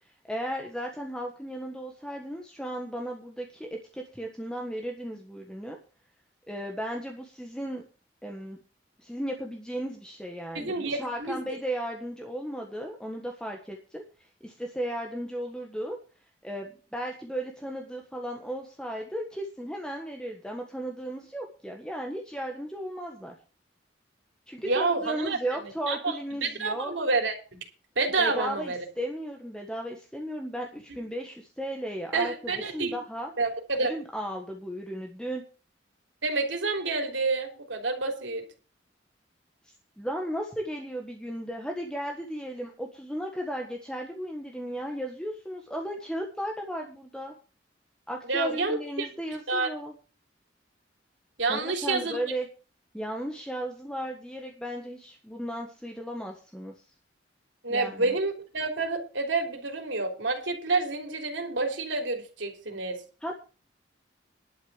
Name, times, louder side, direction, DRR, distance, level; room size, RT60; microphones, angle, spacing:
voice 1, 0.3-5.8 6.5-7.8 8.2-8.6 9.0-16.0 16.4-23.3 24.5-26.9 28.2-33.3 33.8-35.4 40.0-47.3 48.1-49.9 51.5-52.5 52.9-56.8 57.7-58.2 63.2-63.4, equal, 5° left, 1 dB, 1.4 m, -35 dB
voice 2, 10.5-11.4 24.6-25.4 25.9-27.3 27.9-28.8 32.1-32.9 33.4-33.9 36.2-38.4 48.3-49.1 49.5-49.7 51.4-52.2 57.6-63.0, right 3 dB, 85° right, 4 dB, 3.4 m, -28 dB
11.5 x 6.6 x 8.1 m, 0.36 s
head